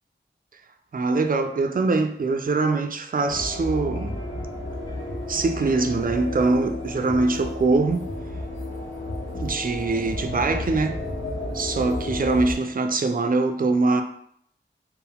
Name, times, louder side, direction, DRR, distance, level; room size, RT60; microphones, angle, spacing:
voice 1, 0.9-4.2 5.3-8.1 9.4-11.0 11.5-14.0, right 3 dB, 45° right, 0.4 m, -23 dB
sound 1, 2.2-8.1 8.5-12.8, left 3 dB, 20° left, 1.0 m, -50 dB
sound 2, 3.3-12.5, left 1 dB, 80° left, 1.3 m, -32 dB
4.5 x 2.1 x 3.5 m
wide cardioid pair, 55°, 20 cm